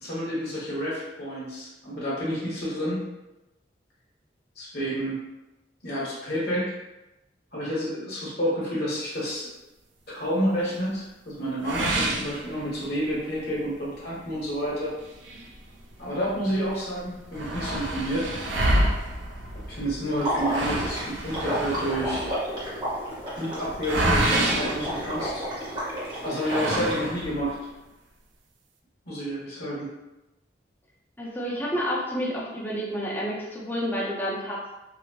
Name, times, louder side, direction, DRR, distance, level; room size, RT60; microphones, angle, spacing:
voice 1, 0.0-3.0 4.6-5.2 5.8-6.7 7.5-9.5 10.1-14.9 16.0-18.3 19.7-22.3 23.3-25.4 26.2-27.6 29.0-29.9, equal, 60° left, -7 dB, 1.1 m, -29 dB
sound 1, 11.6-13.1 13.5-13.6 14.1-14.2 15.0-16.3 16.6-16.7 17.0-25.7 26.4-27.5, right 1 dB, 80° right, 0.4 m, -28 dB
Water / Liquid, 20.2-26.9, equal, 25° right, 0.8 m, -31 dB
voice 2, 26.5-26.8 31.2-34.7, equal, 10° left, -5 dB, 0.5 m, -30 dB
2.8 x 2.1 x 2.9 m, 0.98 s
head